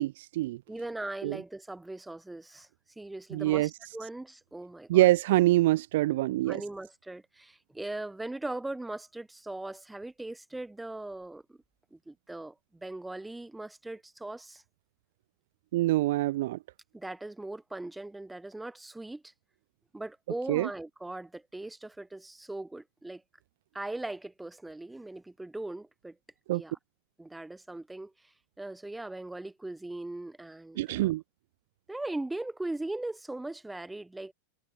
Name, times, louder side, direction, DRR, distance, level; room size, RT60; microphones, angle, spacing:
voice 1, 0.0-0.6 1.2-1.4 3.3-3.7 4.9-6.6 15.7-16.6 20.5-20.7 26.5-26.6 30.8-31.2, right 17 dB, 55° right, 0.4 m, -25 dB
voice 2, 0.7-2.7 3.0-5.1 6.5-11.6 11.9-14.6 16.9-19.3 19.9-23.2 23.7-26.2 26.5-26.8 27.2-28.1 28.6-31.1 31.9-34.3, right 2 dB, 5° right, 3.0 m, -39 dB
figure-of-eight pair, 90°, 0 cm